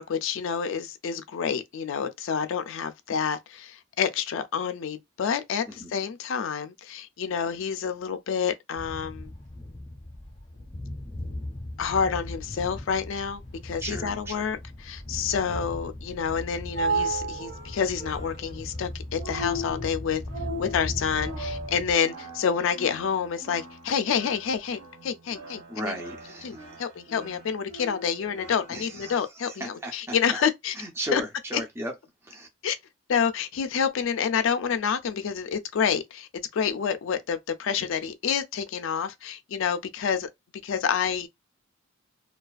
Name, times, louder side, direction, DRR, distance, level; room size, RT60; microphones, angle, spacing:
voice 1, 0.0-9.3 11.8-20.2 20.6-25.9 26.4-30.8 31.1-31.2 31.5-31.6 32.6-32.8 33.1-40.3 40.6-41.3, left 7 dB, 75° left, 0.3 m, -28 dB
sound 1, 8.7-21.9, left 1 dB, 30° left, 0.6 m, -38 dB
voice 2, 13.8-14.5 25.7-26.6 28.7-29.1 29.5-30.2 30.8-31.9 32.2-32.5, right 1 dB, 10° right, 0.4 m, -35 dB
sound 2, 16.3-29.1, right 2 dB, 70° right, 0.7 m, -36 dB
2.4 x 2.2 x 2.3 m
head